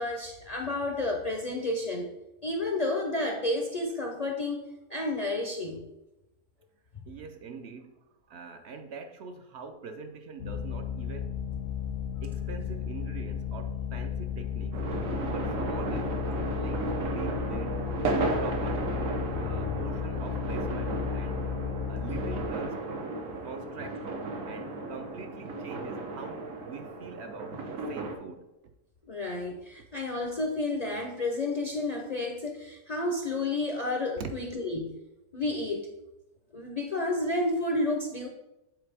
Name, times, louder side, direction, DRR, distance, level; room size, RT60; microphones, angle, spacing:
voice 1, 0.0-2.1 2.4-5.8 29.1-35.0 35.3-35.9 36.5-38.3, left 2 dB, 50° left, 1 dB, 0.5 m, -31 dB
voice 2, 7.1-8.0 8.3-11.3 12.2-14.8 15.3-16.3 16.5-16.8 17.1-17.8 18.4-18.9 19.4-21.4 21.9-22.9 23.4-24.1 24.5-28.5 34.2-34.3, right 4 dB, 65° right, 6 dB, 0.8 m, -43 dB
sound 1, 10.4-22.5, left 8 dB, 70° left, 0.9 m, -34 dB
sound 2, 14.7-28.2, right 2 dB, 80° right, 1.3 m, -34 dB
8.0 x 4.0 x 3.4 m, 0.95 s
omnidirectional pair, 1.4 m